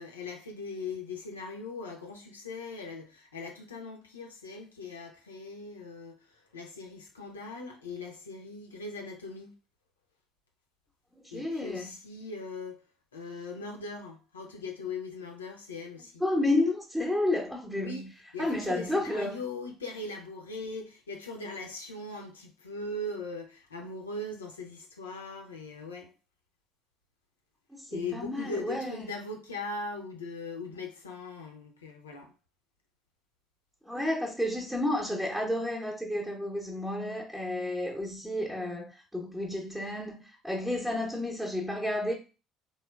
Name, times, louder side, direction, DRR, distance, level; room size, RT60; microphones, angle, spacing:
voice 1, 0.0-9.5 11.3-12.8 13.1-16.2 17.8-18.0 18.3-26.1 27.9-32.3, left 3 dB, 80° left, 0.5 m, -40 dB
voice 2, 11.2-11.9 16.2-18.1 18.4-19.4 27.7-29.0 33.8-42.1, left 1 dB, 5° right, 0.7 m, -31 dB
3.1 x 2.2 x 2.2 m
figure-of-eight pair, 55°, 0 cm